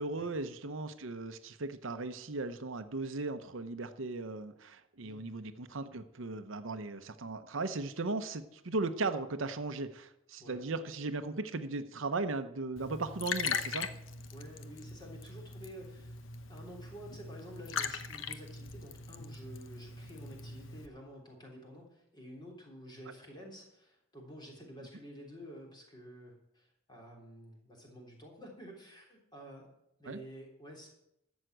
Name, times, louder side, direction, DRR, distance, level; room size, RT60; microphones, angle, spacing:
voice 1, 0.0-13.9 30.1-30.2, right 3 dB, 70° right, 10 dB, 0.8 m, -37 dB
voice 2, 5.0-5.5 10.4-10.7 14.3-16.2 16.5-29.7 30.0-30.9, equal, 20° left, -1 dB, 3.3 m, -50 dB
Liquid, 12.8-20.9, left 5 dB, 65° left, 0.9 m, -40 dB
12.5 x 7.3 x 7.9 m, 0.81 s
head